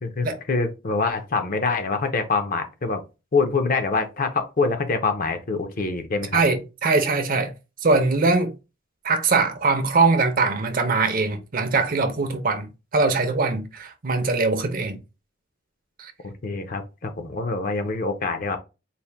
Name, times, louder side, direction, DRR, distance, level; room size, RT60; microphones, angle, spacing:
voice 1, 0.0-3.0 3.3-6.4 16.2-18.6, left 4 dB, 45° left, 0.6 m, -25 dB
voice 2, 6.3-7.5 7.8-8.5 9.0-15.0 16.0-16.1, right 3 dB, 45° right, 0.6 m, -22 dB
4.1 x 2.1 x 3.3 m
head